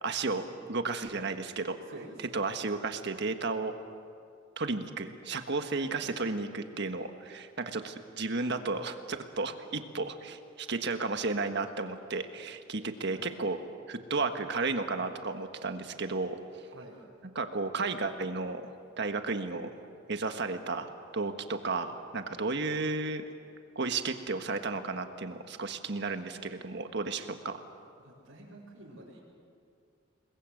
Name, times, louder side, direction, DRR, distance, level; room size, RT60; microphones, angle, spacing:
voice 1, 0.0-1.8 2.3-3.7 4.6-13.6 13.9-16.4 17.3-18.7 19.0-19.7 20.1-23.3 23.7-27.6, right 3 dB, 60° right, 7 dB, 1.5 m, -33 dB
voice 2, 1.9-2.5 5.7-6.0 10.6-10.7 13.0-13.3 16.6-17.0 28.0-29.2, right 1 dB, 90° right, -7 dB, 5.0 m, -49 dB
28.5 x 21.0 x 7.9 m, 2.4 s
head